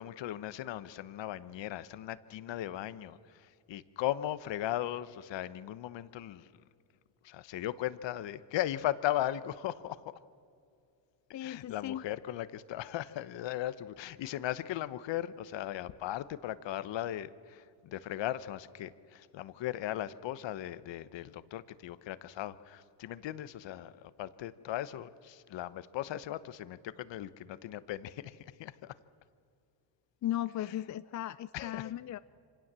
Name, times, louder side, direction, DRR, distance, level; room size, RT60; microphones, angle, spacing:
voice 1, 0.0-6.5 7.2-10.2 11.4-28.9 30.6-30.7 31.5-31.9, left 13 dB, 60° left, 15 dB, 1.1 m, -37 dB
voice 2, 11.3-12.0 30.2-32.2, left 12 dB, 35° left, 15 dB, 0.5 m, -36 dB
25.5 x 17.5 x 7.5 m, 2.5 s
supercardioid pair, 80°, 50 cm